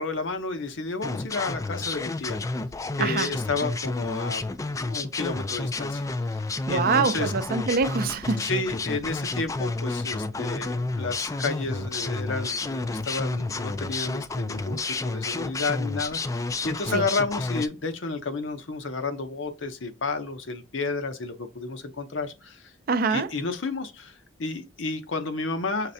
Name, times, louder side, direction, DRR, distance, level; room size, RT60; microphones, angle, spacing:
voice 1, 0.0-2.4 3.0-7.3 8.4-22.7 23.1-25.9, left 3 dB, 75° left, 0.8 m, -31 dB
sound 1, 1.0-17.7, left 3 dB, 15° left, 0.3 m, -30 dB
voice 2, 3.0-3.3 6.7-8.5 16.9-17.0 22.9-23.3, right 4 dB, 50° right, 0.5 m, -25 dB
5.8 x 3.2 x 2.7 m
head